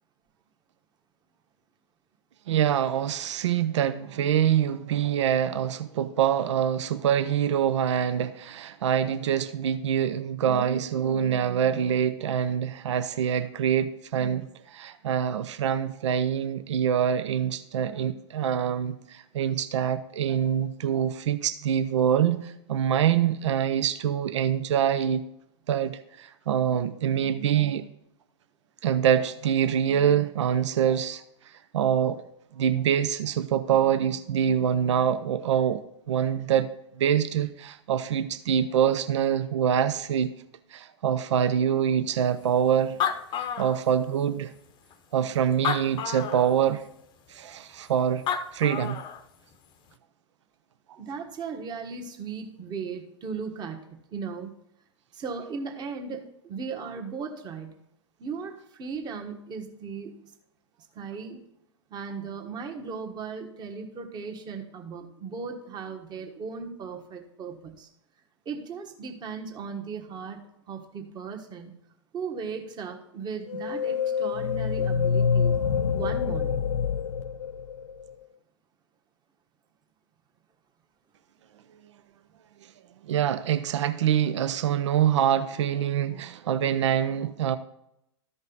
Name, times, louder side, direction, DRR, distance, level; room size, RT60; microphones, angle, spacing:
voice 1, 2.5-25.2 25.7-27.8 28.8-31.2 31.7-32.2 32.6-36.7 37.0-40.3 40.7-43.0 43.4-44.5 45.1-46.8 47.3-48.2 48.5-49.0 83.0-87.6, right 9 dB, 75° right, 12 dB, 0.6 m, -25 dB
Animal, 42.6-42.7 42.8-44.3 44.9-45.0 45.5-46.5 48.0-48.1 48.3-49.2, left 8 dB, 30° left, 0.7 m, -30 dB
voice 2, 51.0-54.5 55.1-57.8 58.2-60.1 60.9-61.5 61.9-67.9 68.4-70.4 70.7-71.7 72.1-75.6 75.9-76.7, right 5 dB, 30° right, 4 dB, 1.4 m, -37 dB
sound 1, 73.5-78.1, left 6 dB, 80° left, 0.4 m, -26 dB
13.5 x 5.3 x 4.0 m, 0.80 s
hypercardioid pair, 110°, 15 cm